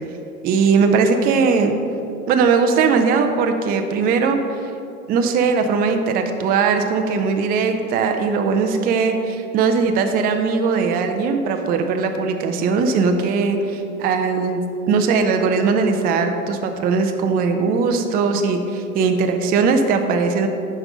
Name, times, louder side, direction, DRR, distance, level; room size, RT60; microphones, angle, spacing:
voice 1, 0.4-1.7 2.3-4.4 5.1-14.6 14.9-20.5, right 5 dB, 20° right, 5 dB, 0.4 m, -19 dB
8.9 x 5.3 x 3.7 m, 2.7 s
hypercardioid pair, 95°, 44 cm